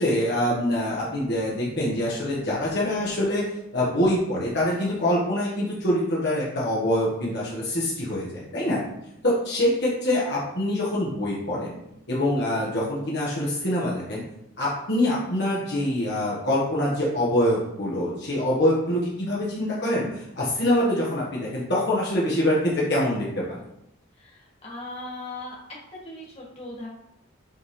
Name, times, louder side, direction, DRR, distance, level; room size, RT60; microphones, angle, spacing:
voice 1, 0.0-8.8 9.2-11.8 12.1-14.2 14.6-23.6, left 1 dB, 55° left, -6 dB, 1.4 m, -25 dB
voice 2, 24.2-25.6 25.9-26.9, left 2 dB, 30° left, -4 dB, 2.0 m, -38 dB
8.2 x 3.8 x 3.3 m, 0.81 s
head